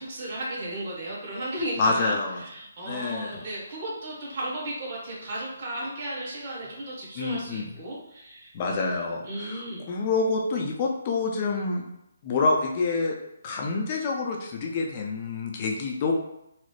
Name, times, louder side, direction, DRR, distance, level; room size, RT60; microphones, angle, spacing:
voice 1, 0.0-8.5 9.2-9.8, right 1 dB, 40° right, -5 dB, 1.3 m, -35 dB
voice 2, 1.8-2.4 2.8-3.5 7.1-7.7 8.5-11.8 12.2-13.1 13.4-16.1, left 3 dB, 30° left, 1 dB, 0.5 m, -27 dB
4.0 x 2.0 x 3.1 m, 0.82 s
hypercardioid pair, 160°, 0 cm